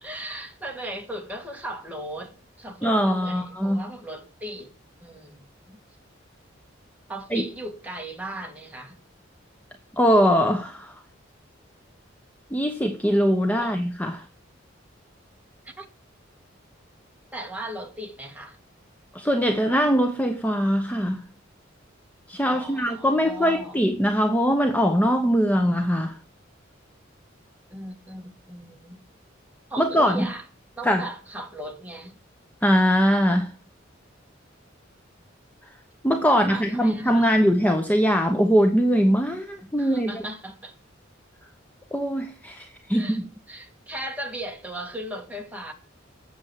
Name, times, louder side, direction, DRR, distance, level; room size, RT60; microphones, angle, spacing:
voice 1, 0.0-4.7 5.0-5.8 7.1-9.0 13.6-13.8 15.8-15.9 17.3-18.6 22.5-23.8 27.7-29.0 29.7-30.5 30.8-32.2 36.3-37.3 39.8-40.8 42.9-43.2 43.5-45.7, right 1 dB, 10° right, 1.8 m, -37 dB
voice 2, 2.8-3.8 7.3-7.4 10.0-10.9 12.5-14.2 19.1-21.2 22.3-26.2 29.8-30.3 30.8-31.0 32.6-33.5 36.0-40.1 41.9-43.3, equal, 10° left, 0.8 m, -21 dB
7.9 x 7.7 x 7.9 m
head